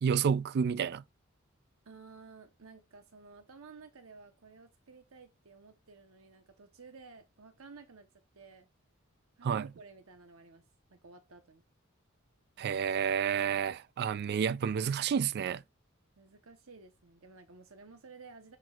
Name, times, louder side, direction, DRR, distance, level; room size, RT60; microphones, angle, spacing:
voice 1, 0.0-1.0 9.4-9.7 12.6-15.6, right 7 dB, 50° right, 0.3 m, -30 dB
voice 2, 1.8-8.1 8.3-8.7 9.4-10.6 10.9-11.6 16.2-18.6, right 4 dB, 90° right, 1.0 m, -54 dB
10.5 x 4.5 x 2.4 m
head